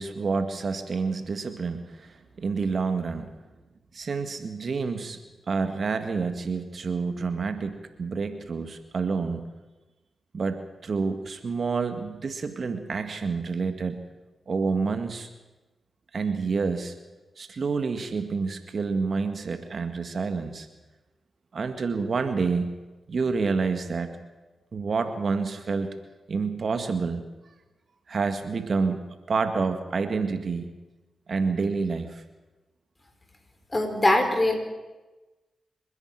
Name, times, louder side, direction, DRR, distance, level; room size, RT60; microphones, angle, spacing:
voice 1, 0.0-3.3 3.9-5.2 5.5-9.4 10.3-14.0 14.5-15.3 16.1-16.9 17.4-20.7 21.5-22.8 23.1-24.2 24.7-25.9 26.3-27.2 28.1-30.7 31.3-32.2, right 4 dB, 60° right, 8 dB, 1.9 m, -28 dB
voice 2, 33.7-34.6, left 1 dB, 25° left, 5 dB, 5.0 m, -22 dB
27.0 x 10.5 x 9.3 m, 1.1 s
supercardioid pair, 45°, 0 cm